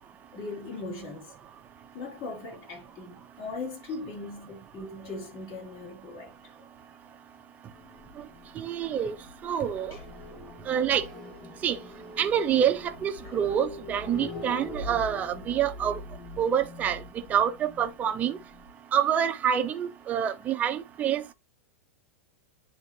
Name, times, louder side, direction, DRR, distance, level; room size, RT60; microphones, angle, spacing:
voice 1, 0.3-1.3 1.9-6.3 9.9-10.0, left 3 dB, 40° left, 4.9 m, -39 dB
sound 1, 7.7-18.7, left 2 dB, 15° left, 2.6 m, -43 dB
voice 2, 8.6-9.1 9.4-10.0 10.7-11.0 11.6-11.8 12.2-16.0 16.4-17.0 17.3-18.4 18.9-21.3, right 9 dB, 20° right, 0.8 m, -27 dB
9.9 x 3.8 x 2.9 m
supercardioid pair, 150°, 7 cm